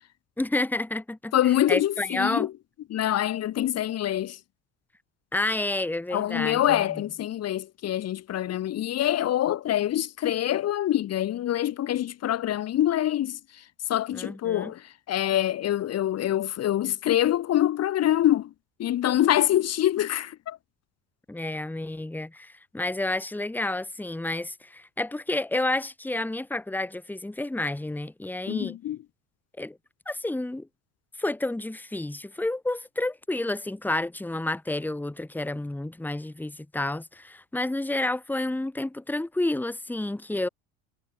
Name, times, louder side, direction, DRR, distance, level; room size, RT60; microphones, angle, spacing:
voice 1, 0.4-2.5 5.3-7.0 14.1-14.7 21.3-28.8 29.6-29.8 30.0-30.7 31.2-40.5, left 2 dB, 5° left, 1.5 m, -30 dB
voice 2, 1.3-2.5 2.9-4.4 6.1-13.4 13.9-18.5 18.8-20.6 28.5-29.0, left 12 dB, 45° left, 1.3 m, -25 dB
supercardioid pair, 90°, 34 cm